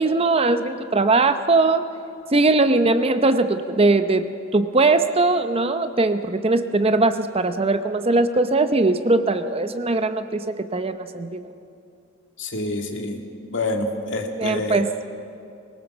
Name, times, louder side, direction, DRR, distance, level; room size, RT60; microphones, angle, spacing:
voice 1, 0.0-1.8 2.3-4.3 4.5-11.4 14.4-14.9, right 3 dB, 30° right, 10 dB, 0.7 m, -20 dB
voice 2, 12.4-13.2 13.5-14.8, left 2 dB, 60° left, 4 dB, 2.1 m, -27 dB
21.5 x 19.0 x 7.2 m, 2.5 s
head